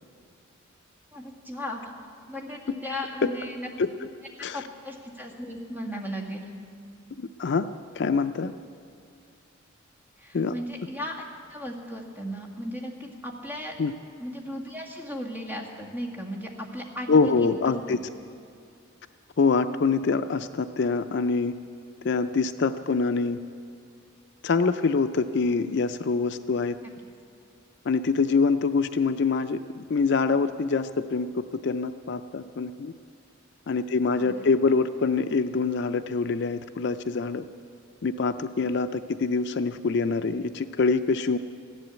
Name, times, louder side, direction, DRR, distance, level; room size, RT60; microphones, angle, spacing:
voice 1, 1.1-1.9 2.3-3.7 4.5-6.5 10.2-11.2 11.5-13.7 14.2-18.0 34.2-34.4, equal, 10° right, -1 dB, 1.8 m, -36 dB
voice 2, 7.2-7.7 8.0-8.5 10.3-10.5 13.8-13.9 17.1-18.0 19.4-21.5 22.0-23.4 24.4-26.7 27.9-32.9 33.7-37.4 38.0-41.4, left 4 dB, 55° left, 10 dB, 0.4 m, -25 dB
15.0 x 11.0 x 8.2 m, 2.4 s
head